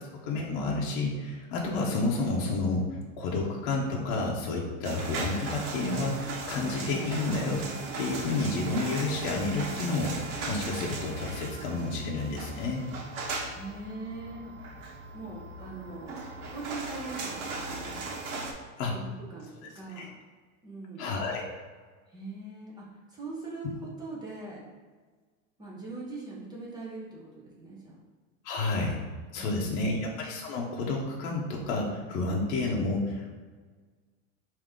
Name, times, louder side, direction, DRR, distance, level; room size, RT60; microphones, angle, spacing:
voice 1, 0.2-2.8 3.2-7.6 8.0-12.8 18.8-18.9 20.0-20.1 21.0-21.4 28.4-29.0 29.3-33.4, left 3 dB, 55° left, -2 dB, 0.8 m, -30 dB
sound 1, 4.8-18.5, right 3 dB, 90° right, 1.0 m, -38 dB
voice 2, 13.5-14.5 15.1-18.1 18.9-20.1 20.6-21.1 22.1-24.7 25.6-28.0, right 3 dB, 10° right, -5 dB, 0.7 m, -41 dB
5.1 x 2.8 x 3.6 m, 1.4 s
supercardioid pair, 160°, 42 cm